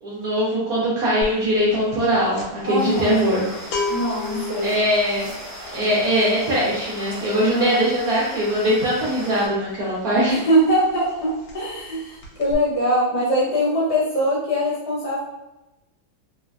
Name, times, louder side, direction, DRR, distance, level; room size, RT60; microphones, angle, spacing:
voice 1, 0.0-3.5 4.6-5.3 5.7-10.3, equal, 65° right, -7 dB, 0.9 m, -21 dB
sound 1, 1.2-1.5 1.7-10.3 10.6-10.8 11.1-11.9 12.2-12.5, left 2 dB, 85° left, 1.4 m, -33 dB
voice 2, 2.6-3.2 3.9-4.7 7.5-7.8 10.3-15.2, equal, 60° left, -7 dB, 1.4 m, -22 dB
sound 2, 2.8-9.5, equal, 40° right, 1.1 m, -37 dB
3.2 x 2.1 x 2.3 m, 0.96 s
omnidirectional pair, 2.1 m